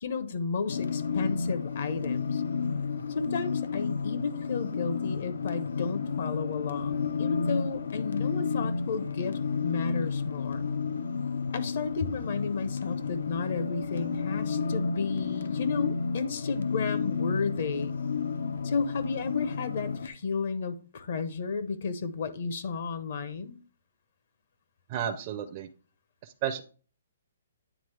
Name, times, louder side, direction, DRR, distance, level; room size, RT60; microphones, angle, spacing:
voice 1, 0.0-2.4 3.1-10.7 11.5-18.0 18.6-23.6, left 4 dB, 50° left, 11 dB, 0.7 m, -33 dB
sound 1, 0.7-20.1, left 5 dB, 85° left, 0.7 m, -31 dB
voice 2, 24.9-25.7 26.2-26.6, right 9 dB, 30° right, 5 dB, 0.5 m, -32 dB
9.1 x 3.8 x 3.3 m, 0.39 s
hypercardioid pair, 170°, 0 cm